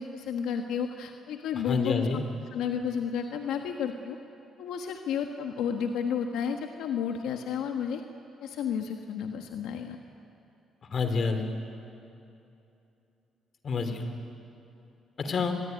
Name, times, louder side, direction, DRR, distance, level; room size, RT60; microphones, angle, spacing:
voice 1, 0.0-2.2 2.5-4.2 4.6-8.0 8.4-10.0, left 7 dB, 90° left, 4 dB, 1.4 m, -32 dB
voice 2, 1.7-2.2 10.9-11.5 13.6-14.0 15.2-15.5, left 4 dB, 50° left, 7 dB, 3.5 m, -28 dB
25.0 x 22.0 x 9.6 m, 2.8 s
cardioid pair, 90°, 0 cm